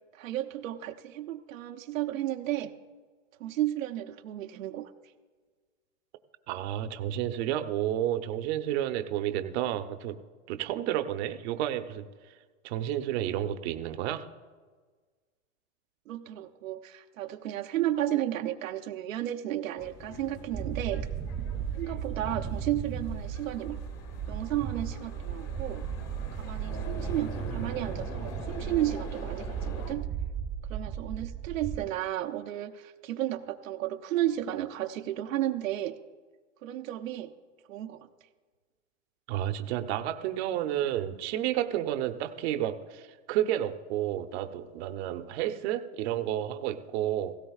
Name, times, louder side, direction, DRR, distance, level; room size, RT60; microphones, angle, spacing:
voice 1, 0.2-2.7 3.4-4.9 16.1-21.1 21.8-23.8 24.3-25.8 26.4-30.1 30.7-35.9 36.6-37.3 37.7-38.1, right 13 dB, 80° right, 5 dB, 0.8 m, -33 dB
voice 2, 6.5-10.2 10.5-12.1 12.6-14.2 39.3-47.3, right 12 dB, 55° right, 8 dB, 0.9 m, -31 dB
sound 1, 19.8-29.9, left 3 dB, 35° left, 1.8 m, -45 dB
sound 2, 20.5-31.8, right 7 dB, 15° right, 0.9 m, -35 dB
17.0 x 16.0 x 2.4 m, 1.5 s
hypercardioid pair, 125°, 39 cm